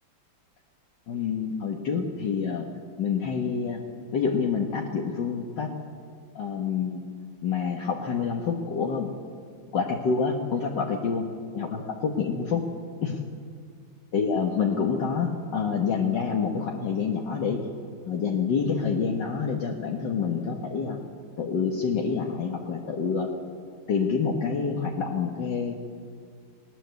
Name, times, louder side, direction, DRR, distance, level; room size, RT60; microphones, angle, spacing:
voice 1, 1.1-2.7 3.0-3.8 4.1-5.7 6.3-7.0 7.4-9.1 9.7-11.3 11.5-12.7 13.0-13.2 14.1-17.6 18.0-21.0 21.4-23.3 23.9-25.8, left 6 dB, 65° left, 0 dB, 2.1 m, -27 dB
21.0 x 19.0 x 8.2 m, 2.2 s
omnidirectional pair, 2.1 m